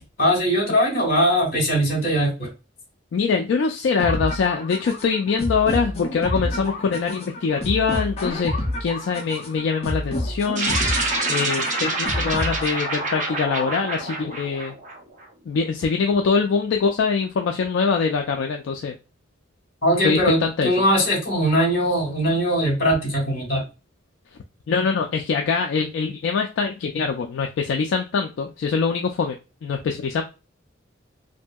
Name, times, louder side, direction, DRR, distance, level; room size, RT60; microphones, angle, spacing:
voice 1, 0.2-2.5 19.8-23.6, equal, 50° left, -1 dB, 1.5 m, -20 dB
voice 2, 3.1-10.8 11.3-14.7 15.5-18.9 20.0-20.7 24.7-29.4 29.6-30.2, left 5 dB, 70° left, 2 dB, 0.3 m, -23 dB
sound 1, 4.0-13.0, left 1 dB, 30° left, 0.6 m, -29 dB
sound 2, 10.5-15.2, right 2 dB, 40° right, 0.6 m, -26 dB
2.7 x 2.6 x 2.2 m, 0.29 s
head